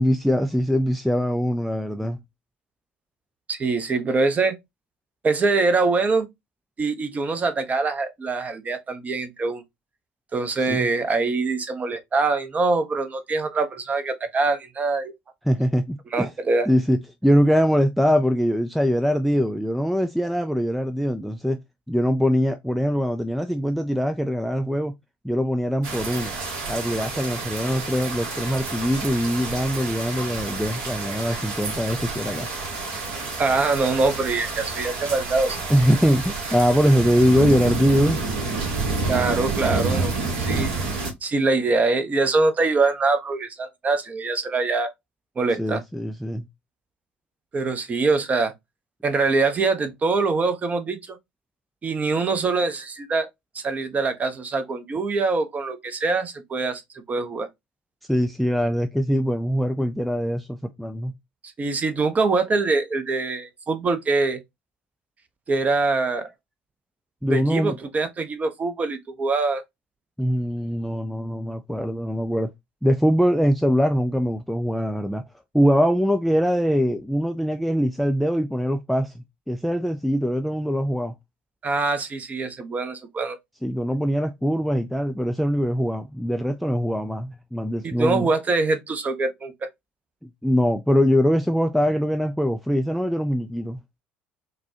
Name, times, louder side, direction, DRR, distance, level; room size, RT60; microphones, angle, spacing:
voice 1, 0.0-2.2 10.7-10.9 15.5-16.3 16.7-21.6 21.9-24.9 25.2-26.3 26.7-32.5 35.7-38.2 45.6-46.5 58.1-61.1 67.2-67.7 70.2-72.5 72.8-75.2 75.5-81.1 83.6-88.3 90.4-93.8, equal, ahead, 0.3 m, -22 dB
voice 2, 3.5-4.6 5.2-6.3 6.8-9.6 10.3-15.1 16.1-16.7 33.4-35.6 39.1-40.7 41.2-44.9 45.4-45.8 47.5-48.5 49.0-51.2 51.8-53.3 53.5-57.5 61.6-64.4 65.5-66.3 67.2-69.6 81.6-83.4 87.8-89.7, right 3 dB, 25° right, 0.7 m, -24 dB
sound 1, 25.8-41.1, right 3 dB, 55° right, 1.3 m, -29 dB
4.0 x 2.2 x 2.7 m
figure-of-eight pair, 60°, 6 cm